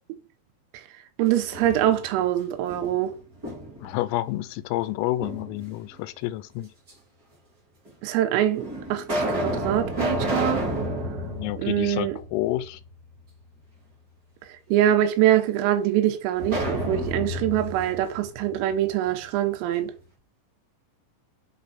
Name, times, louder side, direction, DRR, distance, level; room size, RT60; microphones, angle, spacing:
voice 1, 1.2-3.2 8.0-10.6 11.6-12.2 14.7-19.9, right 12 dB, 85° right, 3.5 m, -24 dB
sound 1, 1.3-2.2 2.7-3.9 5.2-6.0 6.9-7.0 7.9-8.0 8.5-12.6 13.0-13.1 16.4-19.2, equal, 30° right, 1.7 m, -30 dB
voice 2, 3.8-6.7 11.2-12.8, left 15 dB, 85° left, 3.2 m, -29 dB
7.5 x 3.5 x 4.1 m
omnidirectional pair, 5.9 m